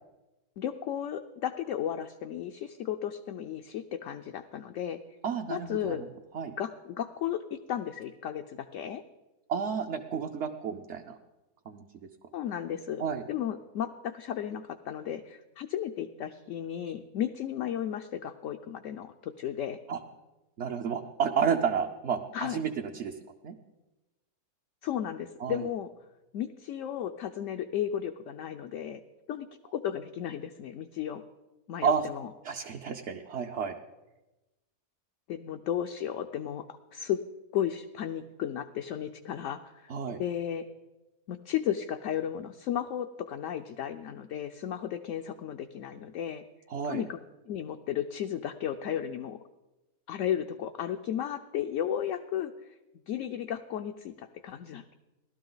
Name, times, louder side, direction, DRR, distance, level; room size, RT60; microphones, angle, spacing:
voice 1, 0.6-5.0 5.5-6.0 6.6-9.0 12.3-19.8 22.3-22.6 24.8-25.9 26.3-29.0 29.3-31.2 31.7-32.3 35.3-37.2 37.5-39.9 40.2-40.6 41.3-46.4 46.8-47.2 47.5-49.4 50.1-52.5 53.1-54.9, left 10 dB, 65° left, 5 dB, 0.9 m, -34 dB
voice 2, 5.2-6.1 6.3-6.5 9.5-11.2 11.7-11.9 13.0-13.2 19.9-20.0 20.6-23.1 23.4-23.6 25.4-25.6 31.8-32.1 32.4-33.7 39.9-40.2 46.7-47.0, right 6 dB, 55° right, 2 dB, 0.9 m, -31 dB
17.5 x 12.5 x 3.9 m, 1.0 s
omnidirectional pair, 1.6 m